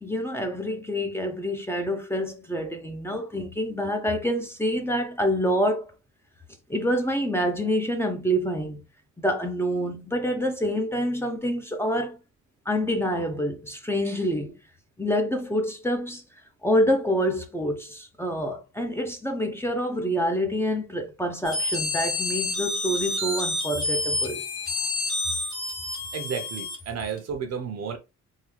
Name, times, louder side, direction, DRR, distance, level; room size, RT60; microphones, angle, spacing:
voice 1, 0.0-5.9 6.7-8.8 9.2-12.2 12.7-14.6 15.0-16.2 16.6-24.4, equal, 10° left, 0.7 m, -27 dB
sound 1, 21.4-27.2, left 2 dB, 45° left, 1.9 m, -29 dB
voice 2, 26.1-28.0, right 6 dB, 55° right, 0.9 m, -32 dB
3.7 x 2.6 x 3.1 m
cardioid pair, 90°, 30 cm